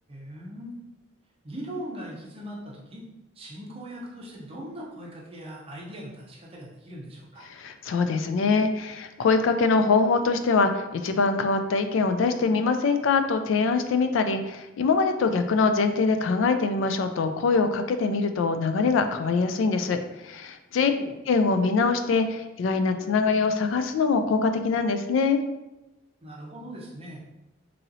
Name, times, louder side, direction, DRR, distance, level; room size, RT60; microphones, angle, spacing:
voice 1, 0.1-0.8 1.4-3.0 3.4-7.4 20.9-21.1 26.2-27.2, equal, 30° right, -3 dB, 0.6 m, -40 dB
voice 2, 7.5-20.9 21.3-25.4, left 4 dB, 70° left, 8 dB, 0.3 m, -23 dB
3.0 x 2.7 x 2.6 m, 0.99 s
head